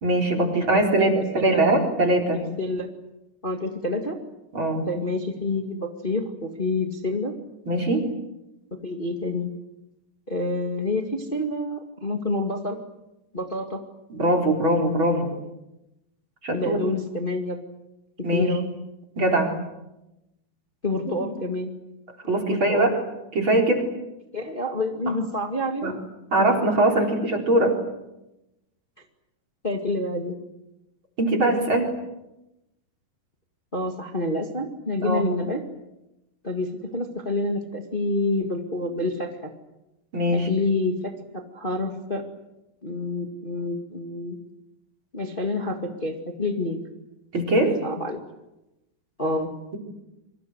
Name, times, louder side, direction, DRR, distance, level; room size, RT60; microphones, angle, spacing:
voice 1, 0.0-2.4 4.5-4.9 7.7-8.1 14.1-15.3 16.4-16.8 18.2-18.6 19.2-19.6 21.2-21.3 22.3-23.0 23.3-23.9 25.1-25.2 25.8-25.9 26.3-27.8 31.2-31.9 35.0-35.3 40.1-40.5 47.3-47.8, right 1 dB, 30° right, 2 dB, 4.5 m, -22 dB
voice 2, 0.7-1.1 1.4-1.6 2.3-2.9 3.4-4.2 4.8-7.3 8.7-9.5 10.3-12.8 13.3-13.8 16.5-17.6 18.3-18.6 20.8-21.7 22.2-23.0 24.3-26.0 29.6-30.3 33.7-35.6 36.4-39.5 40.3-42.2 42.8-44.4 45.1-46.8 47.6-48.2 49.2-49.5, left 2 dB, 35° left, 3 dB, 0.8 m, -28 dB
27.5 x 25.0 x 8.0 m, 0.94 s
omnidirectional pair, 5.0 m